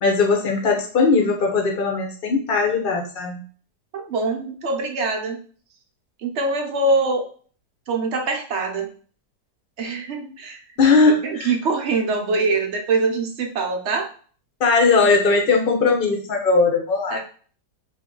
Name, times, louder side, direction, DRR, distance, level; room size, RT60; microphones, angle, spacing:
voice 1, 0.0-3.4 10.8-11.5 14.6-17.2, left 4 dB, 45° left, 1 dB, 0.8 m, -19 dB
voice 2, 3.9-5.4 6.2-7.3 7.9-8.9 9.8-10.6 11.1-14.1 17.1-17.2, right 3 dB, 60° right, 2 dB, 0.7 m, -23 dB
3.0 x 2.7 x 3.7 m, 0.43 s
omnidirectional pair, 1.8 m